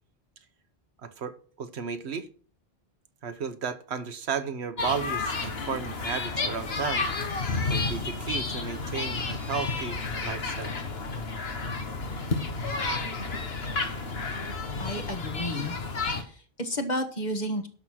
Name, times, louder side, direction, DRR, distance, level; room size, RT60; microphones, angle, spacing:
voice 1, 1.0-2.3 3.2-7.1 7.7-10.7, right 6 dB, 90° right, 10 dB, 1.3 m, -34 dB
sound 1, 4.8-16.2, left 3 dB, 70° left, 1.6 m, -31 dB
voice 2, 14.8-15.7 16.0-17.7, equal, 45° left, 6 dB, 1.7 m, -32 dB
11.5 x 6.0 x 6.4 m, 0.41 s
omnidirectional pair, 1.1 m